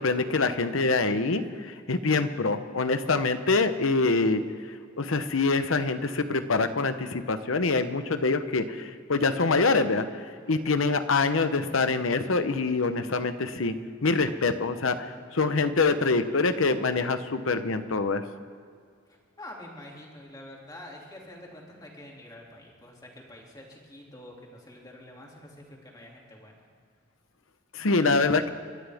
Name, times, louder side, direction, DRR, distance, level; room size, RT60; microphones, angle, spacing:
voice 1, 0.0-4.4 5.0-13.7 14.0-18.2 27.7-28.5, left 3 dB, 85° left, 10 dB, 1.0 m, -25 dB
voice 2, 10.3-10.6 19.1-26.6, left 1 dB, 20° left, -2 dB, 2.8 m, -47 dB
27.5 x 13.0 x 3.6 m, 2.1 s
head